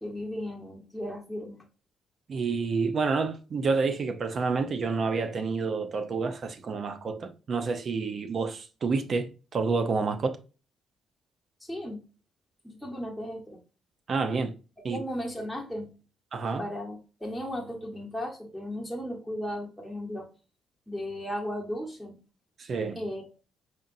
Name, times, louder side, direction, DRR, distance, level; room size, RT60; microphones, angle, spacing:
voice 1, 0.0-1.6 11.6-12.0 12.6-13.6 14.9-15.9 16.6-20.3 20.9-22.2 23.0-23.3, equal, ahead, 1.1 m, -35 dB
voice 2, 2.3-10.4 14.1-14.5 14.8-15.0 16.3-16.6 22.6-23.0, right 4 dB, 50° right, 0.6 m, -29 dB
4.9 x 2.9 x 2.5 m
cardioid pair, 90°, 0 cm